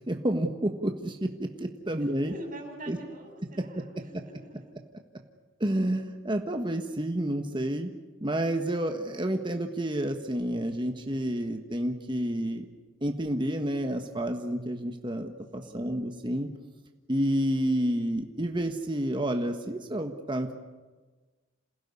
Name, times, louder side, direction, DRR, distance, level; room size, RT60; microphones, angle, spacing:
voice 1, 0.1-2.3 2.9-3.0 5.6-7.9 8.2-12.6 13.0-16.5 17.1-20.5, right 1 dB, 25° right, 5 dB, 1.5 m, -29 dB
voice 2, 2.0-4.7 15.6-16.2, right 1 dB, 45° right, 2 dB, 7.5 m, -45 dB
28.0 x 16.5 x 9.8 m, 1.3 s
head